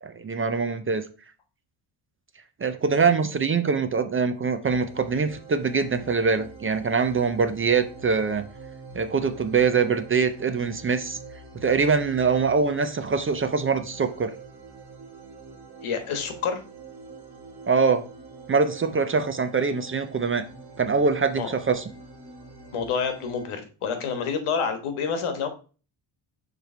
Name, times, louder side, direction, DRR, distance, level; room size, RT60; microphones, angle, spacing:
voice 1, 0.0-1.0 2.6-8.4 8.9-11.2 11.5-14.3 17.7-18.0 18.5-20.4 20.8-21.8, right 5 dB, 30° right, 9 dB, 0.4 m, -23 dB
sound 1, 4.6-23.5, right 3 dB, 50° right, 1.5 m, -45 dB
voice 2, 15.8-16.6 21.3-21.5 22.7-25.5, left 6 dB, 85° left, 7 dB, 1.4 m, -28 dB
7.0 x 3.2 x 4.3 m, 0.36 s
cardioid pair, 140°, 49 cm